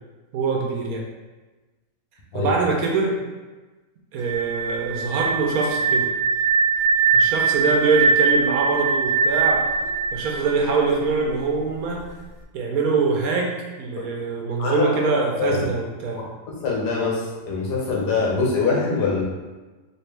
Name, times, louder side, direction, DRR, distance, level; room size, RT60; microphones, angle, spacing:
voice 1, 0.3-1.1 2.3-3.2 4.1-6.1 7.1-9.7 10.1-12.1 12.5-13.5 13.8-16.2, right 4 dB, 70° right, 0 dB, 1.0 m, -23 dB
sound 1, 4.2-11.1, right 5 dB, 90° right, 0.5 m, -21 dB
voice 2, 14.6-15.1 15.4-15.7 16.2-16.3 16.6-19.2, left 4 dB, 80° left, -3 dB, 1.5 m, -23 dB
4.3 x 2.6 x 3.3 m, 1.2 s
omnidirectional pair, 1.8 m